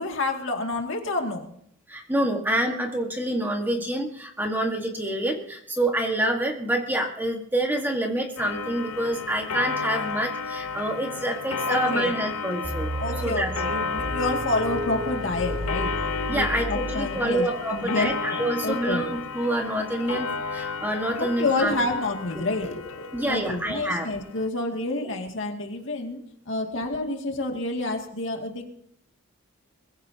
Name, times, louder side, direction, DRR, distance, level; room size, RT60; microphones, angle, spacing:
voice 1, 0.0-1.5 11.7-12.1 13.0-15.9 16.3-17.5 17.7-19.0 21.2-26.2 26.5-28.7, left 2 dB, 60° left, 2 dB, 2.3 m, -28 dB
voice 2, 1.9-12.9 13.2-13.5 16.3-21.7 22.3-22.4 23.1-24.1 25.0-25.1, right 1 dB, 10° right, 3 dB, 1.5 m, -27 dB
Clock, 8.4-24.5, left 4 dB, 75° left, 0.8 m, -33 dB
sound 1, 12.6-17.6, equal, 30° right, 6.9 m, -32 dB
22.0 x 15.5 x 2.8 m, 0.68 s
head